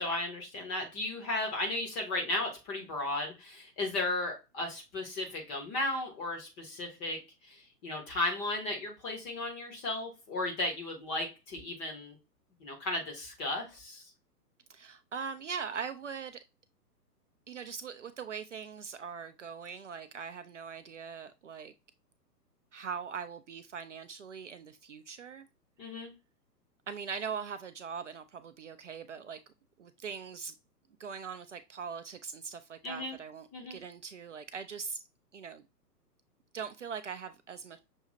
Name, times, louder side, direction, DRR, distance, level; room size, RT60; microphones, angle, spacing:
voice 1, 0.0-12.2 12.6-14.0 25.8-26.1 32.8-33.2 33.5-33.8, left 2 dB, 15° left, 0.7 m, -35 dB
voice 2, 14.7-16.4 17.5-21.7 22.7-25.5 26.9-29.4 29.8-30.5 31.0-35.0 35.3-35.6 36.5-37.8, right 6 dB, 50° right, 0.5 m, -41 dB
6.2 x 2.7 x 2.7 m
figure-of-eight pair, 120°, 49 cm